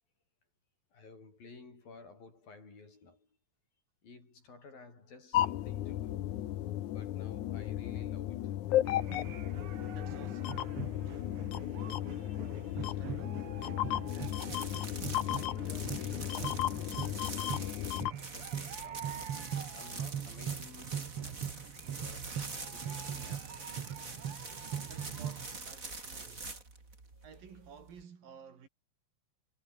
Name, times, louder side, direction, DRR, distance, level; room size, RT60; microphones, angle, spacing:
voice 1, 0.9-3.3 4.0-6.4 6.9-8.6 11.8-12.8 13.8-15.0 15.3-17.8 18.2-19.2 19.8-21.6 21.9-23.8 27.1-27.3, left 4 dB, 85° left, 9.8 m, -55 dB
sound 1, 5.3-18.1, left 13 dB, 65° left, 2.4 m, -34 dB
sound 2, 8.8-25.6, right 9 dB, 50° right, 2.0 m, -42 dB
voice 2, 9.8-14.0 24.7-26.7 27.2-28.7, right 7 dB, 80° right, 5.4 m, -55 dB
sound 3, 14.0-28.0, right 3 dB, 25° right, 4.1 m, -45 dB
omnidirectional pair, 4.0 m